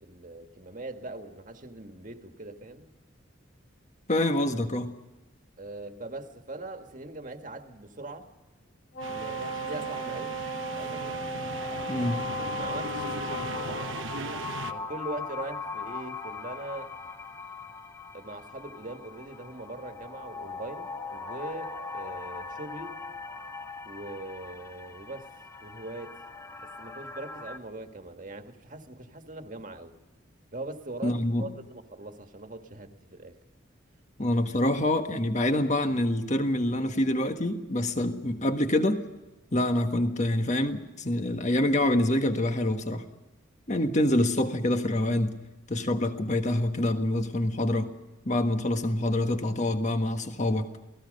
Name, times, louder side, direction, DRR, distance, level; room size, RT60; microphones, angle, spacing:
voice 1, 0.0-2.9 5.6-8.3 9.1-10.4 10.7-11.1 12.0-14.0 14.7-16.9 18.1-23.0 23.9-25.3 25.6-26.2 26.6-29.9 30.5-33.4, right 2 dB, 40° right, 5 dB, 1.8 m, -41 dB
voice 2, 4.1-4.9 11.9-12.3 31.0-31.5 34.2-39.0 39.5-43.1 43.7-45.4 45.7-47.9 48.2-50.7, left 1 dB, 35° left, 6 dB, 1.5 m, -26 dB
Wind instrument woodwind instrument, 8.9-14.0, equal, 85° left, 4.4 m, -35 dB
sound 1, 9.0-14.7, right 4 dB, 80° right, 1.0 m, -38 dB
sound 2, 11.5-27.6, left 4 dB, 15° left, 1.1 m, -41 dB
28.5 x 18.5 x 5.4 m, 1.1 s
head